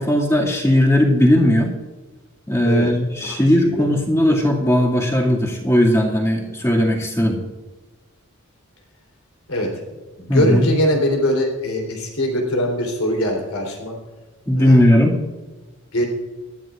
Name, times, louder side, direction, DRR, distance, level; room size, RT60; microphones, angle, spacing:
voice 1, 0.0-1.7 2.5-7.4 10.3-10.6 14.5-15.2, left 1 dB, 15° left, -2 dB, 2.2 m, -17 dB
voice 2, 3.2-4.0 9.5-9.7 10.2-14.0 14.6-14.8 15.9-16.0, equal, 85° left, 1 dB, 3.5 m, -22 dB
20.0 x 12.5 x 2.5 m, 1.2 s
head